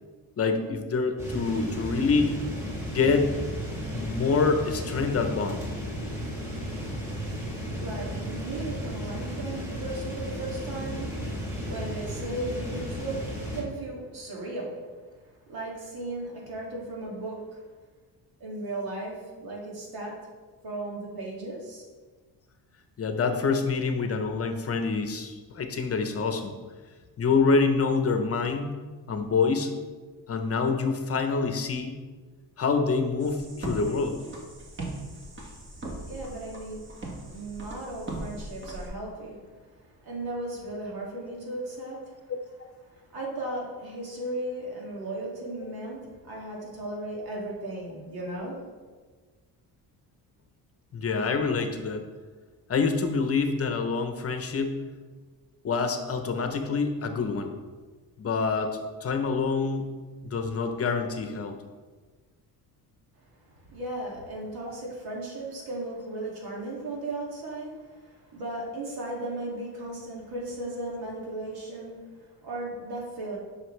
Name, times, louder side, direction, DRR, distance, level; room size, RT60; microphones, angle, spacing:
voice 1, 0.4-2.4 2.9-3.3 3.9-5.6 23.0-26.5 27.2-28.7 29.1-29.7 30.3-31.9 32.6-34.2 42.3-42.7 45.6-45.7 50.9-52.0 52.7-54.7 55.6-57.6 58.2-59.9 60.2-61.6, left 4 dB, 40° left, 6 dB, 0.8 m, -26 dB
sound 1, 1.2-13.6, equal, 10° right, 2.6 m, -34 dB
voice 2, 7.8-14.8 15.5-17.6 18.4-20.1 20.6-21.9 36.0-36.9 37.2-42.2 42.8-48.6 63.5-73.4, right 2 dB, 80° right, -3 dB, 2.5 m, -36 dB
sound 2, 33.2-38.9, right 2 dB, 30° right, 1.6 m, -39 dB
11.0 x 5.7 x 3.3 m, 1.4 s
cardioid pair, 130°, 37 cm